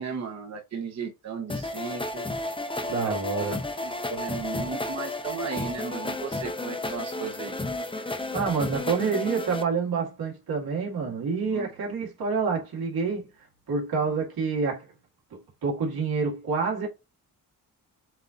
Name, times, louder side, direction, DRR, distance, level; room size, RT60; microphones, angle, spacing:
voice 1, 0.0-2.3 3.0-3.2 3.8-7.6 11.5-11.7, right 5 dB, 45° right, 1.0 m, -35 dB
sound 1, 1.5-9.6, left 2 dB, 15° left, 0.6 m, -32 dB
voice 2, 2.9-3.7 8.1-13.3 13.7-14.9 15.6-16.9, right 5 dB, 85° right, 2.0 m, -28 dB
7.5 x 2.7 x 2.5 m
cardioid pair, 105°, 36 cm